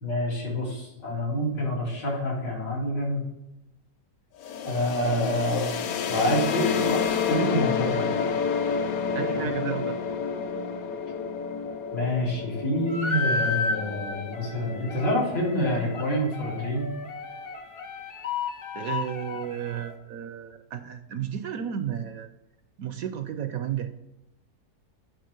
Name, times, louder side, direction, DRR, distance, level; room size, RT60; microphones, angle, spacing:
voice 1, 0.0-3.2 4.6-5.8 6.1-8.2 11.9-16.9, left 1 dB, 90° left, -4 dB, 3.2 m, -27 dB
sound 1, 4.4-16.1, left 6 dB, 65° left, 1.0 m, -30 dB
voice 2, 9.1-10.0 18.7-22.3 22.8-23.9, right 9 dB, 70° right, 9 dB, 0.9 m, -33 dB
sound 2, 12.9-19.9, left 4 dB, 45° left, 0.9 m, -33 dB
10.0 x 3.5 x 5.2 m, 0.92 s
omnidirectional pair, 1.8 m